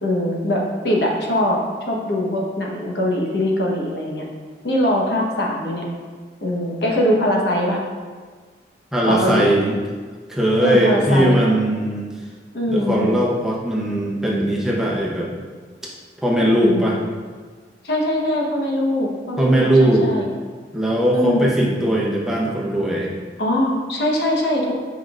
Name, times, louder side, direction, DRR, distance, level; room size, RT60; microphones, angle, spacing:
voice 1, 0.0-1.6 1.9-4.2 4.6-5.9 6.4-7.8 9.0-9.5 10.6-11.4 12.5-13.1 16.6-16.9 17.8-20.3 21.1-21.4 23.4-24.7, left 1 dB, 75° left, -2 dB, 1.2 m, -22 dB
voice 2, 8.9-9.8 10.3-12.0 12.7-15.3 16.2-17.0 19.4-20.1 20.7-23.1, right 1 dB, 5° right, -5 dB, 0.7 m, -19 dB
8.4 x 5.2 x 2.5 m, 1.5 s
head